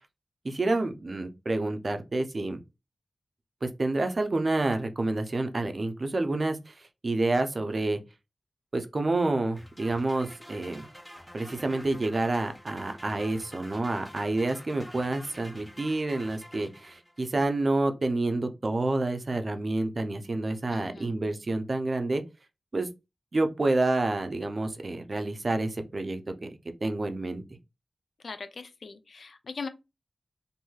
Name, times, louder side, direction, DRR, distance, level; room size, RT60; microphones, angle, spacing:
voice 1, 0.4-2.6 3.6-8.0 8.7-10.9 11.3-22.2 22.7-22.9 23.3-26.5 26.8-27.4, right 2 dB, 60° right, 0.5 m, -28 dB
sound 1, 9.6-17.3, equal, 20° left, 1.0 m, -48 dB
voice 2, 20.7-21.1 28.2-29.7, left 4 dB, 80° left, 0.4 m, -40 dB
3.0 x 2.6 x 2.3 m
cardioid pair, 40°, 0 cm